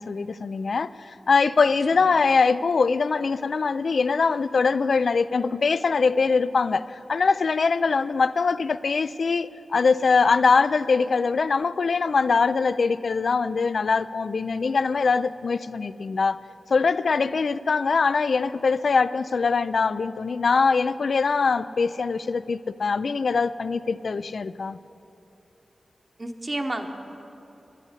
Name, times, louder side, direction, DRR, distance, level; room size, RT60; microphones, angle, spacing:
voice 1, 0.0-16.4 16.7-24.8, left 4 dB, 70° left, 0.3 m, -22 dB
voice 2, 26.2-26.9, right 1 dB, 35° right, 1.1 m, -31 dB
11.5 x 9.1 x 8.2 m
cardioid pair, 65°, 0 cm